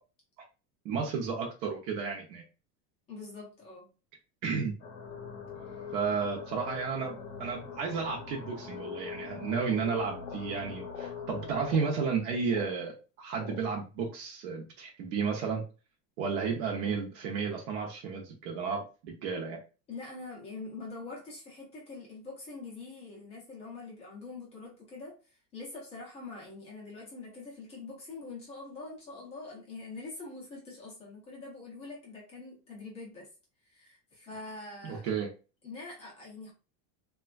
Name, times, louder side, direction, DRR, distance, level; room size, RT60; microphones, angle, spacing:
voice 1, 0.8-2.4 4.4-4.8 5.9-15.6 16.2-19.6 34.8-35.3, right 5 dB, 50° right, 0 dB, 0.6 m, -33 dB
voice 2, 3.1-3.9 5.6-5.9 19.9-33.3 33.6-35.1 35.6-36.5, left 3 dB, 15° left, -4 dB, 0.4 m, -44 dB
sound 1, 4.8-11.7, left 6 dB, 30° left, 0.7 m, -42 dB
sound 2, 10.2-10.5 10.8-11.2 11.6-12.0 12.5-12.7 13.4-13.7, left 10 dB, 75° left, 0.6 m, -45 dB
3.2 x 2.2 x 2.2 m, 0.33 s
supercardioid pair, 170°, 49 cm